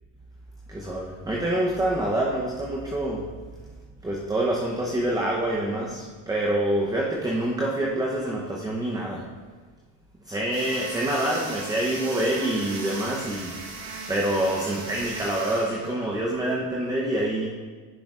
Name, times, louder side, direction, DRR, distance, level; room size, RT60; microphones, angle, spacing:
voice 1, 0.7-3.3 4.0-9.3 10.2-13.6 14.1-17.5, right 1 dB, 10° right, -2 dB, 0.9 m, -26 dB
sound 1, 10.5-16.5, right 3 dB, 55° right, 1.8 m, -38 dB
10.5 x 5.7 x 2.5 m, 1.4 s
supercardioid pair, 90°, 45 cm